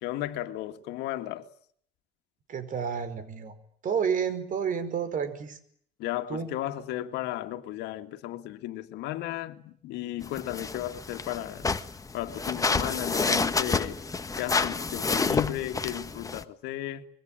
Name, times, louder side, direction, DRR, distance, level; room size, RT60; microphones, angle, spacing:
voice 1, 0.0-1.5 6.0-11.7 12.1-14.0 14.4-17.1, left 14 dB, 90° left, 2.0 m, -34 dB
voice 2, 2.5-3.5 3.8-5.6 6.3-6.5, right 7 dB, 50° right, 4.9 m, -30 dB
sound 1, 10.2-16.4, left 4 dB, 20° left, 1.4 m, -29 dB
26.0 x 22.5 x 9.1 m
cardioid pair, 110°, 17 cm